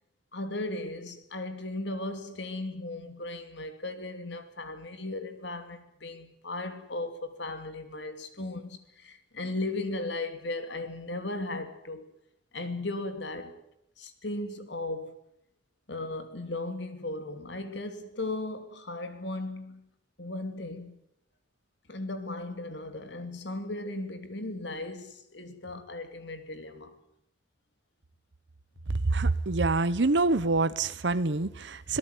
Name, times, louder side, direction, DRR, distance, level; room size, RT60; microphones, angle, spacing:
voice 1, 0.3-12.1 12.5-13.6 14.0-15.2 15.9-19.9 20.2-21.0 21.9-26.9, left 2 dB, 65° left, 2.9 m, -36 dB
voice 2, 29.0-32.0, right 3 dB, 65° right, 0.9 m, -26 dB
26.0 x 18.0 x 9.2 m
head